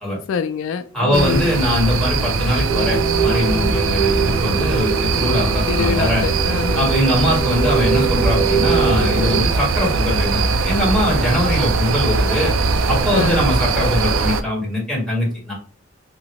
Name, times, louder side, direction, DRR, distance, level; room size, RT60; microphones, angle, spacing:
voice 1, 0.3-1.5 5.7-6.9 13.1-13.4, left 6 dB, 75° left, 0.3 m, -25 dB
voice 2, 0.9-6.2 6.7-12.5 12.9-15.5, left 1 dB, ahead, 1.6 m, -21 dB
sound 1, 1.1-14.4, right 4 dB, 85° right, 0.4 m, -20 dB
sound 2, 2.7-9.4, right 5 dB, 15° right, 0.9 m, -23 dB
3.0 x 2.7 x 2.9 m
head